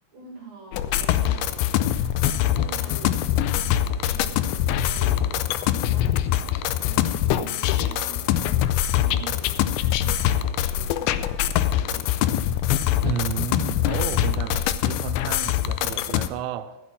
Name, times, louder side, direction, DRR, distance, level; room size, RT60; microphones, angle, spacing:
voice 1, 0.1-6.2 6.8-12.0, right 4 dB, 55° right, 2.0 m, -45 dB
sound 1, 0.7-16.3, left 11 dB, 85° left, 2.8 m, -23 dB
voice 2, 13.0-16.8, right 9 dB, 85° right, 2.9 m, -32 dB
13.5 x 7.6 x 6.1 m
omnidirectional pair, 5.0 m